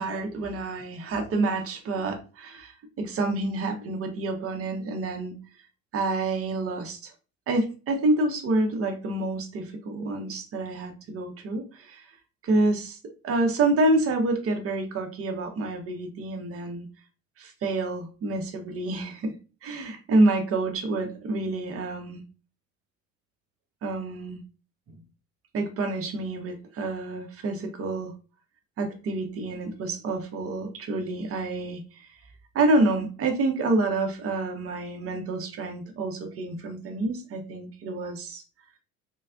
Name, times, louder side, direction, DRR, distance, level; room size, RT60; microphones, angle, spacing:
voice 1, 0.0-5.3 5.9-7.1 7.5-12.1 12.4-13.0 13.2-16.9 17.4-19.3 19.6-22.2 23.8-24.4 25.5-28.1 28.8-32.1 32.5-38.4, right 2 dB, 35° right, 5 dB, 0.9 m, -28 dB
3.2 x 3.2 x 2.4 m, 0.33 s
figure-of-eight pair, 60°, 42 cm